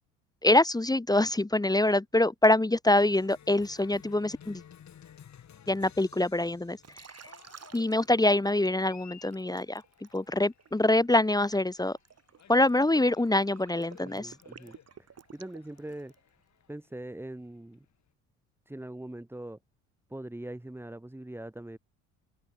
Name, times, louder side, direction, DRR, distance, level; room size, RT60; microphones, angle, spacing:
voice 1, 0.4-4.6 5.7-6.8 7.7-9.8 10.1-12.0 12.5-14.3, left 1 dB, 10° left, 1.6 m, -25 dB
Cheering, 2.9-18.1, left 9 dB, 45° left, 6.8 m, -56 dB
Liquid, 6.8-8.8 9.3-16.3, right 7 dB, 40° right, 7.7 m, -53 dB
voice 2, 14.0-14.8 15.3-16.1 16.7-17.9 18.7-19.6 20.1-21.8, right 1 dB, 5° right, 1.9 m, -41 dB
hypercardioid pair, 55°, 38 cm